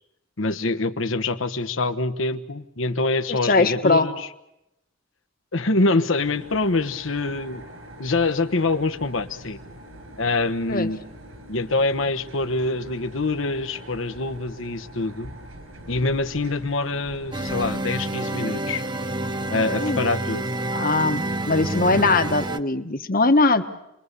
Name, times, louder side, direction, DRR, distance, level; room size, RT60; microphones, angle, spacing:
voice 1, 0.4-4.3 5.5-7.6 8.0-9.6 10.2-11.0 11.5-15.3 15.9-18.8 19.5-20.4, left 3 dB, 70° left, 10 dB, 1.3 m, -25 dB
voice 2, 3.3-4.1 10.7-10.9 19.8-20.0 20.7-23.6, left 3 dB, 45° left, 8 dB, 1.4 m, -21 dB
sound 1, 6.2-17.8, right 1 dB, 80° right, 6.3 m, -44 dB
sound 2, 17.3-22.6, right 1 dB, 20° right, 0.8 m, -28 dB
28.5 x 22.0 x 6.9 m, 0.84 s
head